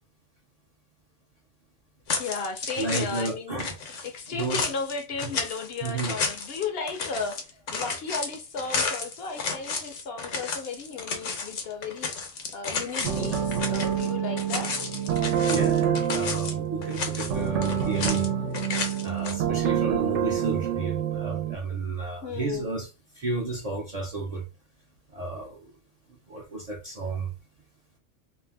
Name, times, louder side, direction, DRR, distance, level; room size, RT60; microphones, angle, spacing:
sound 1, 2.1-3.3 3.6-14.1 14.4-16.5 16.8-18.3 18.5-19.3, left 5 dB, 85° left, 1.1 m, -32 dB
voice 1, 2.2-3.6 4.0-7.4 7.7-14.7 22.2-22.8, left 4 dB, 65° left, 0.7 m, -34 dB
voice 2, 2.8-3.7 4.3-4.7 5.2-5.3 5.8-6.2 15.5-18.3 19.0-22.9 23.2-24.5 25.1-25.7 26.3-27.3, right 3 dB, 45° right, 0.5 m, -32 dB
sound 2, 13.0-21.5, right 9 dB, 80° right, 0.9 m, -27 dB
2.6 x 2.1 x 3.3 m
omnidirectional pair, 1.2 m